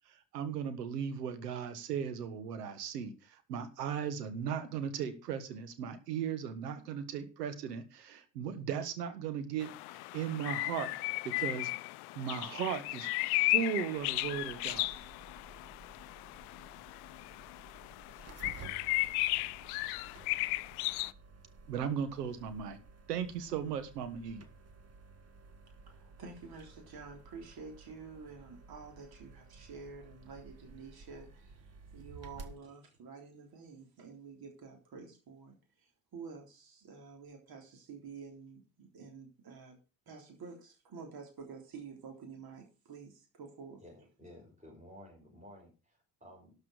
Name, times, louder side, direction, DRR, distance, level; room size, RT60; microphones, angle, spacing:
voice 1, 0.0-10.9 11.2-11.7 12.1-13.1 13.5-15.0 21.7-22.8 23.1-24.4, right 7 dB, 75° right, 13 dB, 1.5 m, -37 dB
sound 1, 9.6-21.1, left 22 dB, 55° left, 0.6 m, -35 dB
sound 2, 13.9-32.6, right 4 dB, 30° right, 1.6 m, -54 dB
voice 2, 25.9-31.6 31.9-39.8 40.1-43.8, right 5 dB, 45° right, 2 dB, 3.6 m, -49 dB
voice 3, 43.8-46.5, equal, 15° right, -2 dB, 5.1 m, -54 dB
12.0 x 5.6 x 6.5 m, 0.32 s
figure-of-eight pair, 50°, 48 cm